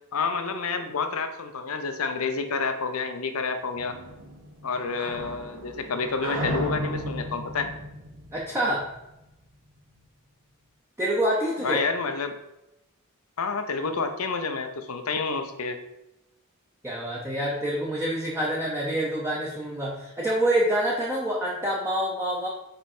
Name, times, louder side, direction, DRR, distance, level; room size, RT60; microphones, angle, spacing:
voice 1, 0.1-4.0 4.6-7.7 11.6-12.4 13.4-15.8, left 4 dB, 70° left, 7 dB, 0.7 m, -29 dB
sound 1, 3.8-9.2, equal, 70° right, 1.1 m, -35 dB
voice 2, 8.3-8.9 11.0-11.8 16.8-22.5, right 1 dB, 10° right, -4 dB, 0.8 m, -26 dB
5.2 x 4.5 x 4.4 m, 0.92 s
head